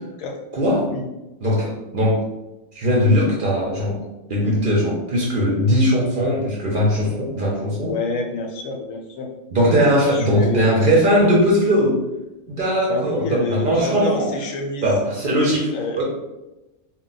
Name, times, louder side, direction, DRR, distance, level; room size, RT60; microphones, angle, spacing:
voice 1, 0.5-0.9 1.4-2.3 2.7-4.0 4.3-7.9 9.5-12.0 12.5-14.3 14.8-16.0, equal, 55° right, -4 dB, 0.6 m, -19 dB
voice 2, 7.8-9.3 10.0-10.6 12.9-14.9 15.7-16.0, left 3 dB, 80° left, 1 dB, 1.0 m, -27 dB
2.2 x 2.1 x 3.8 m, 1.0 s
omnidirectional pair, 1.4 m